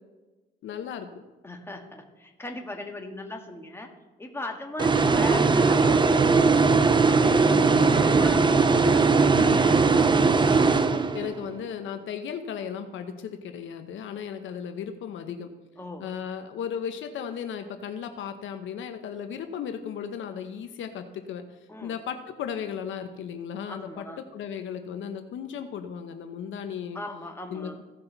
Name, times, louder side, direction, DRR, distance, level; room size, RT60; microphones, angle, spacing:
voice 1, 0.6-1.2 7.5-8.3 9.4-9.6 11.1-15.5 16.0-27.0 27.5-27.8, left 8 dB, 75° left, 7 dB, 0.9 m, -36 dB
voice 2, 1.4-3.9 4.2-6.7 7.0-9.8 15.8-16.0 21.7-21.9 23.7-24.2 26.9-27.8, left 2 dB, 10° left, 2 dB, 1.7 m, -39 dB
sound 1, 4.8-11.5, right 4 dB, 25° right, 0.6 m, -20 dB
16.0 x 5.6 x 4.0 m, 1.2 s
cardioid pair, 90°, 20 cm